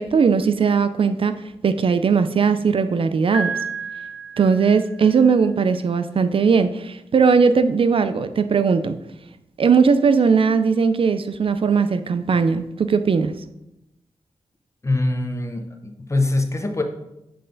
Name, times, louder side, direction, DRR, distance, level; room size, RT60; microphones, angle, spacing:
voice 1, 0.0-1.3 1.6-3.5 4.4-9.0 9.6-13.3, right 5 dB, 55° right, 11 dB, 0.4 m, -18 dB
Piano, 3.3-5.3, right 4 dB, 10° right, 0.6 m, -31 dB
voice 2, 14.8-16.8, left 2 dB, 25° left, 4 dB, 0.7 m, -23 dB
7.7 x 3.3 x 3.8 m, 0.87 s
cardioid pair, 70°, 11 cm